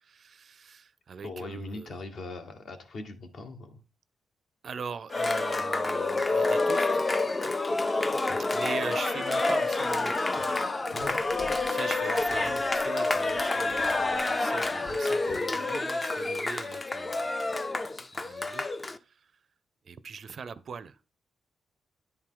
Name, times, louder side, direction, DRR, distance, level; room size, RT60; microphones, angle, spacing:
voice 1, 0.0-2.0 4.6-7.1 8.5-10.2 11.3-17.8 18.1-18.7 19.0-19.3 19.8-21.0, right 6 dB, 50° right, 0.5 m, -41 dB
voice 2, 1.2-3.8 8.2-8.4 10.9-11.3, left 2 dB, 65° left, 1.2 m, -40 dB
Cheering, 5.1-19.0, left 2 dB, 25° left, 0.4 m, -28 dB
sound 1, 10.4-15.4, left 2 dB, 80° left, 2.9 m, -51 dB
9.9 x 4.5 x 3.7 m
cardioid pair, 120°, 0 cm